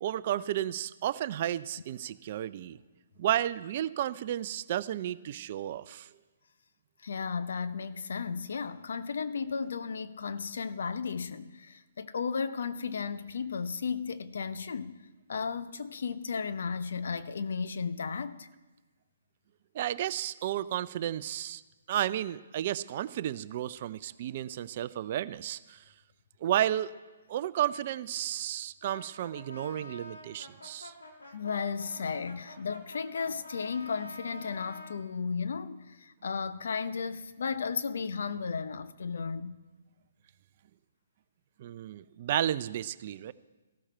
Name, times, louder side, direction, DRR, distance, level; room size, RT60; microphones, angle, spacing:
voice 1, 0.0-2.8 3.2-6.1 19.7-21.6 21.9-25.8 26.4-26.9 27.3-30.9 41.6-43.3, right 12 dB, 45° right, 0.5 m, -32 dB
voice 2, 7.0-15.0 15.3-18.5 31.3-39.6, left 5 dB, 70° left, 0.8 m, -34 dB
Brass instrument, 28.8-35.0, left 2 dB, 90° left, 2.9 m, -48 dB
14.5 x 13.0 x 4.5 m
hypercardioid pair, 140°, 0 cm